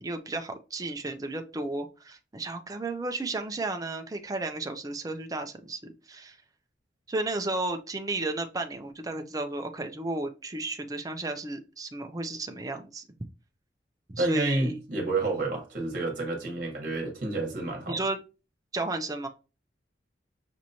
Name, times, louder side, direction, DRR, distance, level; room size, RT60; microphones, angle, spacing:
voice 1, 0.0-6.4 7.1-13.0 14.1-14.7 17.9-18.2 18.7-19.3, right 2 dB, 20° right, 0.4 m, -33 dB
voice 2, 14.2-18.0, right 2 dB, 50° right, 1.2 m, -29 dB
6.0 x 3.0 x 2.7 m
head